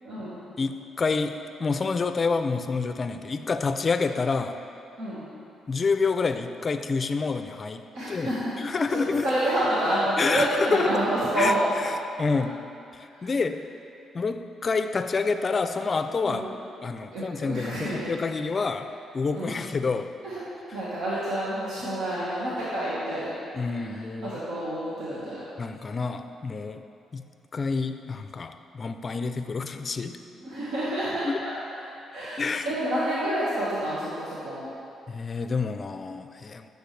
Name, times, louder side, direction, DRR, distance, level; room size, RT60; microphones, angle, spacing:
voice 1, 0.0-0.4 5.0-5.2 7.9-11.7 12.3-12.4 13.1-13.3 16.2-16.5 17.1-18.1 19.3-19.6 20.2-20.4 20.7-23.3 23.7-25.4 30.4-31.5 32.1-34.7, right 1 dB, 75° right, -9 dB, 1.5 m, -29 dB
voice 2, 0.6-4.6 5.7-7.8 8.1-8.3 8.6-9.3 10.2-10.9 11.3-11.5 12.2-12.6 12.9-13.6 14.1-16.4 16.8-20.1 23.6-24.4 25.6-26.8 27.1-27.2 27.5-30.2 31.2-31.4 32.4-32.7 35.1-36.7, left 4 dB, 35° left, 9 dB, 0.4 m, -28 dB
9.7 x 6.5 x 3.3 m, 2.7 s
cardioid pair, 90°, 0 cm